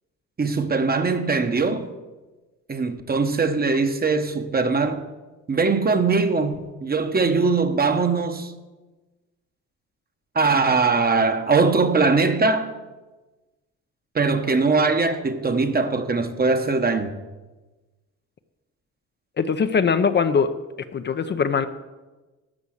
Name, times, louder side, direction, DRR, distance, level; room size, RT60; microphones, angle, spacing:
voice 1, 0.4-1.9 2.7-5.0 5.5-8.5 10.3-12.7 14.1-17.1, right 4 dB, 30° right, 1.1 m, -21 dB
voice 2, 19.4-20.5 20.9-21.7, left 6 dB, 35° left, 0.6 m, -21 dB
12.5 x 6.8 x 6.4 m
cardioid pair, 90°, 30 cm